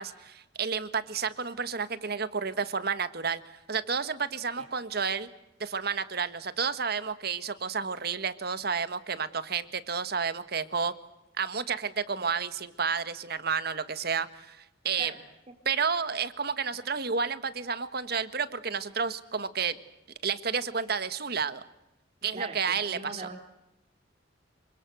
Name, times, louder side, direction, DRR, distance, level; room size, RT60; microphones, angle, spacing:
voice 1, 0.0-5.3 5.6-10.9 11.4-15.1 15.6-19.8 20.2-21.6 22.2-23.3, right 6 dB, 60° right, 13 dB, 1.6 m, -31 dB
voice 2, 22.3-23.4, right 3 dB, 35° right, 4 dB, 3.1 m, -40 dB
27.5 x 25.0 x 7.9 m, 0.89 s
head